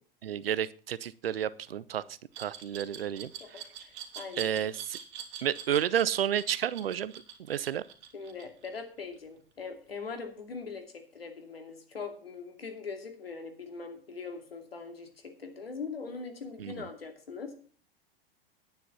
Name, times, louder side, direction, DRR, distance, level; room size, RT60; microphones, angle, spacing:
voice 1, 0.2-2.0 2.4-3.6 4.4-5.0 5.4-7.1 7.5-7.8 16.6-16.9, right 9 dB, 75° right, 19 dB, 0.7 m, -31 dB
Glass, 2.3-9.2, right 9 dB, 50° right, 2.5 m, -44 dB
voice 2, 3.4-4.6 8.1-17.5, left 4 dB, 85° left, 6 dB, 2.6 m, -41 dB
10.5 x 9.3 x 5.5 m, 0.42 s
hypercardioid pair, 100°, 29 cm